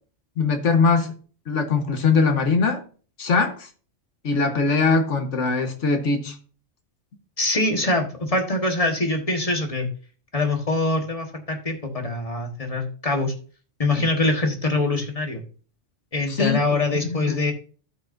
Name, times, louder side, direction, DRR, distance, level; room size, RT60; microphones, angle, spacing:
voice 1, 0.4-1.2 1.5-2.8 3.2-3.7 4.2-6.4 16.3-16.6 17.1-17.4, left 4 dB, 70° left, 6 dB, 1.6 m, -21 dB
voice 2, 7.4-9.9 10.3-13.3 13.8-15.4 16.1-17.5, left 2 dB, 30° left, 4 dB, 1.5 m, -24 dB
13.0 x 5.7 x 2.6 m, 0.38 s
omnidirectional pair, 1.3 m